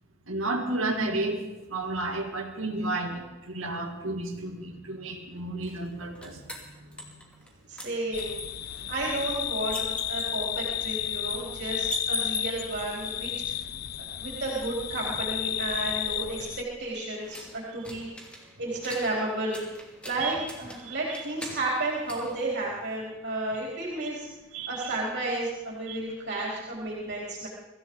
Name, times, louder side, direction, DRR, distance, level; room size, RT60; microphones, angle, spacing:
voice 1, 0.3-1.4 1.7-6.4 6.8-7.1 8.8-8.9 12.3-12.4 20.2-20.4 20.8-21.2 24.5-24.9 25.9-26.0, right 2 dB, 85° right, 3 dB, 2.4 m, -32 dB
sound 1, 5.6-7.5 7.8-12.8 15.6-23.1, equal, 5° left, 2.8 m, -42 dB
voice 2, 7.7-13.6 14.2-18.1 18.6-19.6 20.0-24.3 24.7-27.5, right 2 dB, 60° right, -4 dB, 4.0 m, -32 dB
sound 2, 8.1-16.6, left 11 dB, 50° left, 0.5 m, -32 dB
24.0 x 15.0 x 4.0 m, 1.1 s
head